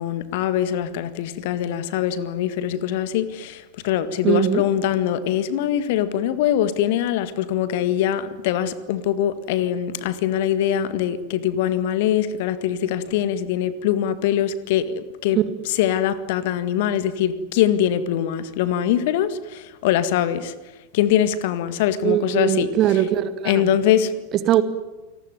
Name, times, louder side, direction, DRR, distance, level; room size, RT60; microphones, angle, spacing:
voice 1, 0.0-15.4 15.7-20.5 20.9-22.7 23.5-24.2, left 10 dB, 50° left, 1.8 m, -23 dB
voice 2, 4.2-4.6 22.0-23.7 24.3-24.6, right 11 dB, 35° right, 2.3 m, -21 dB
29.0 x 19.5 x 9.6 m
figure-of-eight pair, 90°, 0 cm